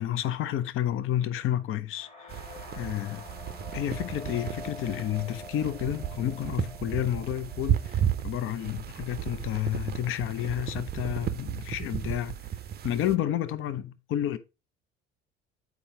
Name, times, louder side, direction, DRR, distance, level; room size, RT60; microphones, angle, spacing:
voice 1, 0.0-2.4 2.7-3.2 3.7-12.3 12.8-14.4, left 11 dB, 40° left, 0.6 m, -30 dB
sound 1, 1.9-9.8, left 3 dB, 20° left, 1.7 m, -47 dB
sound 2, 2.3-13.2, right 10 dB, 30° right, 0.6 m, -34 dB
8.4 x 4.8 x 3.7 m
figure-of-eight pair, 60°, 32 cm